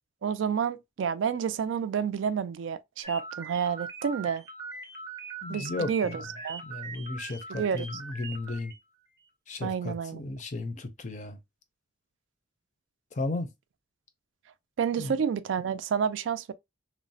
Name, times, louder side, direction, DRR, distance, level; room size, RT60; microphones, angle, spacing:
voice 1, 0.2-4.4 5.5-6.6 7.5-7.9 9.6-10.2 14.8-16.5, right 7 dB, 80° right, 0.3 m, -29 dB
sound 1, 3.0-8.8, right 3 dB, 20° right, 0.6 m, -41 dB
voice 2, 5.4-6.2 6.6-8.7 9.5-11.4 13.1-13.5 15.0-15.2, left 2 dB, 40° left, 0.5 m, -35 dB
3.0 x 2.0 x 2.6 m
head